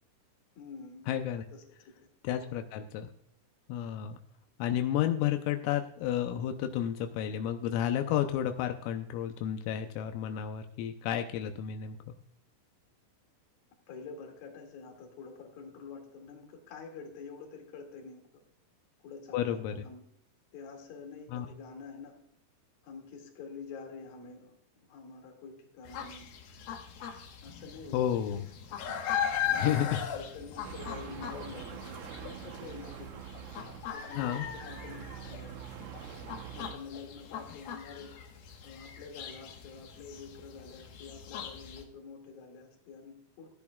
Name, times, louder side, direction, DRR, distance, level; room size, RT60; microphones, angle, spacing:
voice 1, 0.6-1.1 1.5-1.9 2.3-2.6 13.9-18.2 19.0-20.0 20.5-22.2 22.8-24.5 24.9-26.3 27.4-28.2 28.7-29.0 29.5-33.2 33.9-35.6 36.5-38.1 38.6-43.5, left 5 dB, 55° left, 2 dB, 3.5 m, -47 dB
voice 2, 1.1-1.4 2.2-3.1 3.7-4.2 4.6-12.1 19.3-19.7 21.3-21.5 27.9-28.5 29.6-30.0 34.2-34.5, left 10 dB, 85° left, 6 dB, 3.4 m, -31 dB
sound 1, 25.9-41.8, left 8 dB, 70° left, 2.5 m, -39 dB
sound 2, 30.6-36.8, right 10 dB, 80° right, 3.4 m, -45 dB
15.5 x 10.5 x 2.4 m, 0.67 s
omnidirectional pair, 5.8 m